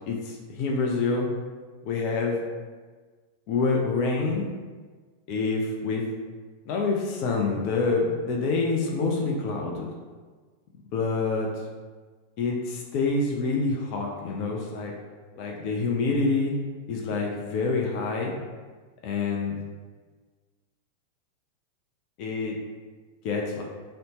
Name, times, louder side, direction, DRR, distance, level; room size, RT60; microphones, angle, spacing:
voice 1, 0.1-1.3 1.8-2.4 3.5-4.5 5.3-6.0 6.7-9.9 10.9-11.6 12.4-14.9 15.4-16.5 16.9-18.3 19.0-19.6 22.2-22.6 23.2-23.6, left 3 dB, 45° left, -1 dB, 0.3 m, -27 dB
2.6 x 2.0 x 2.9 m, 1.4 s
figure-of-eight pair, 90°, 0 cm